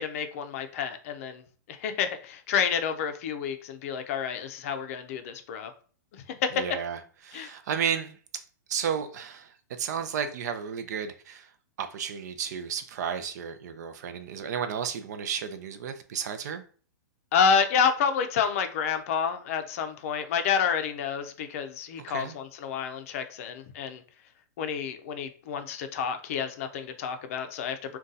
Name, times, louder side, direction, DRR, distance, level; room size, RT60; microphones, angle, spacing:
voice 1, 0.0-1.4 1.7-5.7 6.1-6.5 7.3-7.5 17.3-24.0 24.6-28.0, left 7 dB, 45° left, 0.5 m, -29 dB
voice 2, 6.5-8.4 8.7-11.5 11.8-16.6 22.1-22.4, right 7 dB, 60° right, 0.5 m, -33 dB
2.6 x 2.3 x 3.8 m
hypercardioid pair, 155°, 10 cm